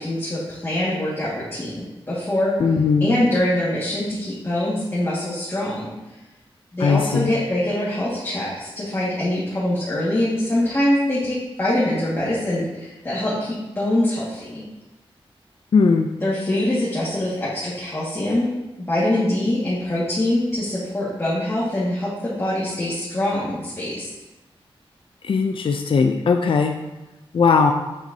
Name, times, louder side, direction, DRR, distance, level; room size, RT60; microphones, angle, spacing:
voice 1, 0.0-2.6 3.0-5.9 6.7-14.6 16.2-18.5 18.8-24.1, left 1 dB, 25° left, -9 dB, 1.8 m, -24 dB
voice 2, 2.6-3.1 6.8-7.4 15.7-16.1 25.2-26.7 27.3-27.7, left 5 dB, 60° left, 5 dB, 0.4 m, -18 dB
7.9 x 6.1 x 2.8 m, 1.0 s
wide cardioid pair, 120°, 10 cm